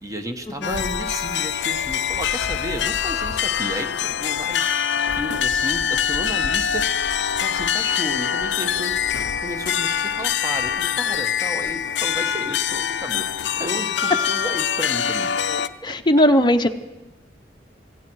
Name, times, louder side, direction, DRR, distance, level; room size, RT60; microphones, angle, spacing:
voice 1, 0.0-4.8 5.1-6.9 7.4-8.9 9.4-13.3 13.6-15.3 15.6-15.9, equal, 20° right, 6 dB, 1.3 m, -32 dB
sound 1, 0.6-15.7, left 8 dB, 90° left, 0.5 m, -24 dB
voice 2, 15.8-16.7, equal, 25° left, 5 dB, 0.7 m, -17 dB
18.5 x 15.5 x 4.7 m, 1.0 s
head